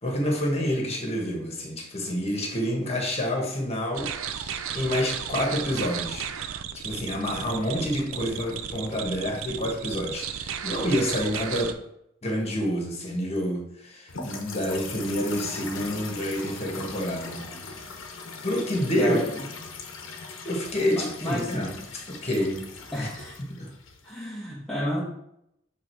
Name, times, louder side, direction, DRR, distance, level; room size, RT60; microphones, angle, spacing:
voice 1, 0.0-6.3 6.7-11.8 12.2-18.1 18.4-19.2 20.4-21.7 22.1-22.6 23.0-23.1 23.5-23.7, equal, 30° left, 0 dB, 1.6 m, -28 dB
sound 1, 3.9-11.7, right 8 dB, 85° right, 0.5 m, -34 dB
sound 2, 14.1-24.2, left 4 dB, 70° left, 1.0 m, -40 dB
voice 2, 19.0-19.5 20.9-21.7 22.9-23.4 24.0-25.0, left 1 dB, 5° left, -9 dB, 1.2 m, -31 dB
7.4 x 3.7 x 4.6 m, 0.77 s
head